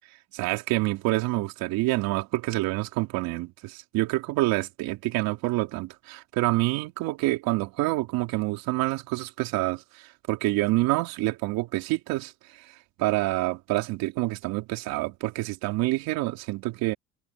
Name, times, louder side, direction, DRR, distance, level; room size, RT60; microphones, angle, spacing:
voice 1, 0.3-12.3 13.0-16.9, right 19 dB, 80° right, 3.7 m, -27 dB
cardioid pair, 115°, 35 cm